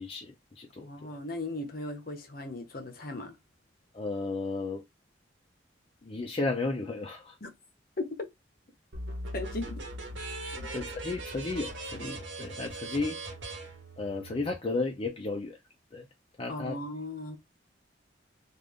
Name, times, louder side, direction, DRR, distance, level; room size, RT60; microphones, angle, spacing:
voice 1, 0.0-1.1 3.9-4.8 6.0-7.3 10.7-13.2 14.0-15.6 15.9-16.1 16.4-16.8, left 3 dB, 30° left, 0.5 m, -34 dB
voice 2, 0.8-3.4 7.4-7.5 8.0-8.3 9.3-9.8 10.5-10.7 16.5-17.4, left 2 dB, 50° left, 0.9 m, -37 dB
sound 1, 8.9-14.5, right 1 dB, 70° right, 1.1 m, -40 dB
3.3 x 2.5 x 3.5 m
head